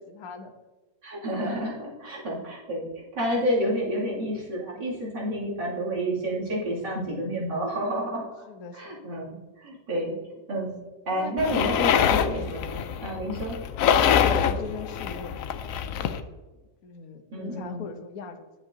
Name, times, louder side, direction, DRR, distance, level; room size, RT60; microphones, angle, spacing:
voice 1, 0.1-0.5 2.4-2.5 8.5-8.8 11.1-11.3 11.6-12.5 13.8-16.2 16.8-18.5, left 6 dB, 60° left, 6 dB, 1.2 m, -38 dB
voice 2, 1.0-8.2 8.7-10.1 10.5-10.7 11.1-13.6 17.3-17.9, equal, 70° right, -6 dB, 3.2 m, -30 dB
sound 1, 11.4-16.2, left 8 dB, 75° left, 0.7 m, -25 dB
10.5 x 7.9 x 2.7 m, 1.2 s
omnidirectional pair, 1.9 m